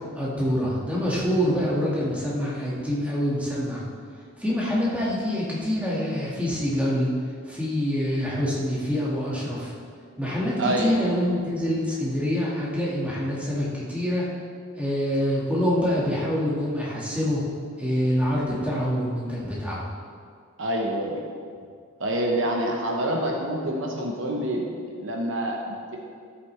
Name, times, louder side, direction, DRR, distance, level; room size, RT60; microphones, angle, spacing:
voice 1, 0.2-3.8 4.4-7.1 7.4-9.7 10.2-14.3 14.8-17.4 17.8-19.9, equal, 5° right, -6 dB, 1.8 m, -26 dB
voice 2, 10.6-10.9 20.6-21.2 22.0-26.0, right 1 dB, 60° right, 0 dB, 1.0 m, -27 dB
13.5 x 8.1 x 3.3 m, 2.2 s
head